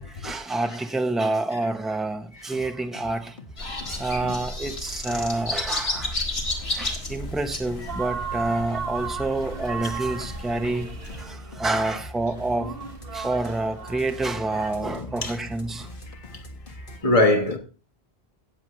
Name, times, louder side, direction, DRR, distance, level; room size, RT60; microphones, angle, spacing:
voice 1, 0.0-3.4 3.9-6.2 6.7-10.9 11.2-12.8 13.1-15.9, right 2 dB, ahead, 0.8 m, -28 dB
sound 1, 2.3-17.0, left 1 dB, 55° left, 1.9 m, -42 dB
sound 2, 3.6-11.3, left 2 dB, 75° left, 2.1 m, -33 dB
sound 3, 7.9-14.7, right 6 dB, 65° right, 1.7 m, -36 dB
voice 2, 14.8-15.3 17.0-17.6, left 1 dB, 35° left, 1.4 m, -22 dB
17.5 x 7.4 x 3.2 m
omnidirectional pair, 1.1 m